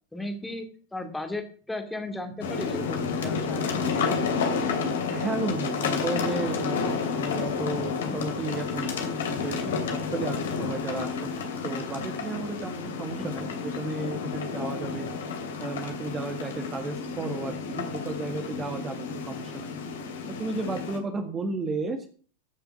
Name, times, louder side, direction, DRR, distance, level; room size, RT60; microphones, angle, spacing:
voice 1, 0.1-4.2 13.2-13.3, left 2 dB, 5° left, 5 dB, 2.3 m, -36 dB
sound 1, 2.4-21.0, left 5 dB, 60° left, 2.6 m, -30 dB
voice 2, 5.1-9.7 10.1-11.1 11.4-15.1 15.6-19.8 20.3-22.1, right 3 dB, 20° right, 6 dB, 1.7 m, -33 dB
15.0 x 6.9 x 7.0 m, 0.43 s
figure-of-eight pair, 90°, 0 cm